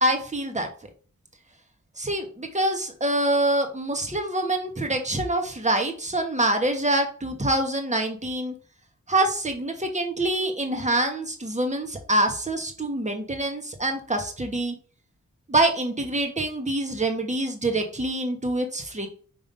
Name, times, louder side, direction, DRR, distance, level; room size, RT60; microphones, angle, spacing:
voice 1, 0.0-0.7 2.0-8.5 9.1-14.7 15.5-19.1, right 1 dB, 25° right, 4 dB, 1.5 m, -25 dB
5.4 x 3.6 x 5.4 m, 0.42 s
wide cardioid pair, 70°, 30 cm